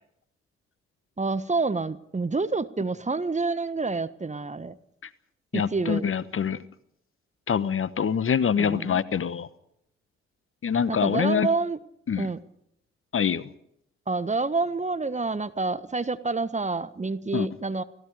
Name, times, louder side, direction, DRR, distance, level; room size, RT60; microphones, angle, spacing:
voice 1, 1.2-4.7 5.5-6.1 8.6-9.0 10.9-11.8 12.2-12.4 14.1-17.8, right 3 dB, 20° right, 1.4 m, -28 dB
voice 2, 5.5-6.6 7.5-9.5 10.6-11.5 12.1-12.3 13.1-13.5 17.3-17.5, left 7 dB, 40° left, 1.2 m, -25 dB
30.0 x 17.5 x 5.2 m
figure-of-eight pair, 45°, 34 cm